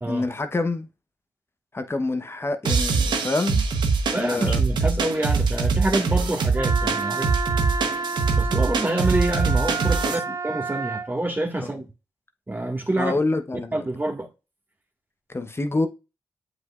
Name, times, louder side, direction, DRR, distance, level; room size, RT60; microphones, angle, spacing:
voice 1, 0.1-0.9 1.7-3.6 4.1-4.6 10.0-10.2 11.6-11.7 12.9-13.8 15.3-15.9, left 2 dB, 30° left, 1.0 m, -27 dB
sound 1, 2.6-10.1, right 4 dB, 75° right, 1.0 m, -23 dB
voice 2, 4.1-7.3 8.4-11.8 12.5-13.1 13.7-14.3, right 1 dB, 25° right, 1.8 m, -27 dB
Wind instrument woodwind instrument, 6.6-11.1, right 4 dB, 40° right, 0.6 m, -30 dB
7.8 x 4.9 x 2.4 m
supercardioid pair, 45°, 8 cm